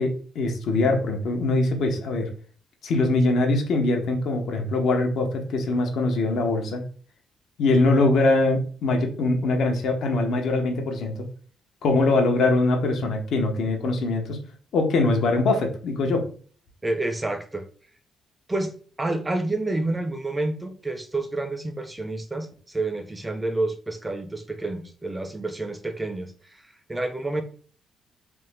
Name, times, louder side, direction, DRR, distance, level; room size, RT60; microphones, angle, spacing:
voice 1, 0.0-2.3 2.8-6.8 7.6-11.1 11.8-14.4 14.7-16.3, left 2 dB, 70° left, 3 dB, 0.8 m, -22 dB
voice 2, 16.8-17.6 18.5-26.3 26.9-27.4, right 2 dB, 15° right, 7 dB, 0.5 m, -29 dB
3.4 x 2.1 x 3.3 m, 0.43 s
cardioid pair, 90°, 0 cm